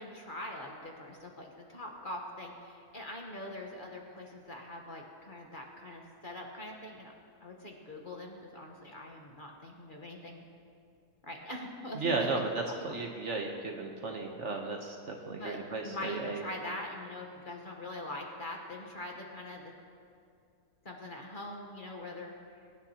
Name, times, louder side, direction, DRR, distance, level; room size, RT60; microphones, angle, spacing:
voice 1, 0.0-7.1 7.4-10.4 11.2-12.7 15.3-19.7 20.8-22.3, left 1 dB, 35° left, 0 dB, 1.2 m, -43 dB
voice 2, 11.9-16.4, right 3 dB, 55° right, 2 dB, 1.1 m, -34 dB
23.0 x 9.8 x 2.9 m, 2.4 s
omnidirectional pair, 1.7 m